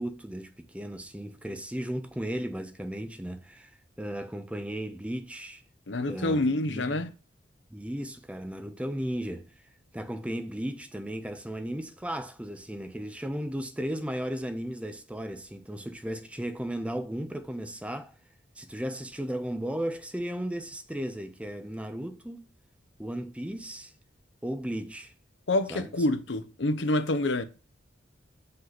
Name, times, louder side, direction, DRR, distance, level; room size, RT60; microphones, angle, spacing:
voice 1, 0.0-3.7 4.0-5.6 6.1-6.4 6.7-7.0 7.7-9.5 9.9-18.1 18.6-22.5 23.0-23.9 24.4-25.1 25.7-25.9, equal, 5° right, 0.7 m, -35 dB
voice 2, 5.9-7.1 25.5-27.4, left 2 dB, 65° left, 0.8 m, -27 dB
6.1 x 5.5 x 4.0 m
head